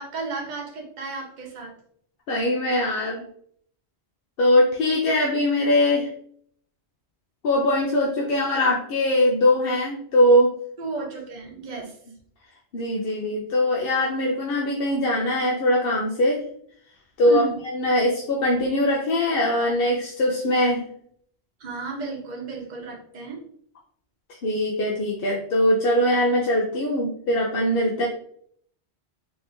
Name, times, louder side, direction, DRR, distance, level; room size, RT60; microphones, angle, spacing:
voice 1, 0.0-1.7 10.8-12.0 17.2-17.6 21.6-23.4, right 4 dB, 45° right, 0 dB, 0.9 m, -33 dB
voice 2, 2.3-3.2 4.4-6.1 7.4-10.5 12.7-16.4 17.2-17.5 17.7-20.9 24.4-28.1, left 1 dB, 60° left, -2 dB, 0.8 m, -21 dB
3.9 x 2.9 x 2.6 m, 0.62 s
omnidirectional pair, 1.1 m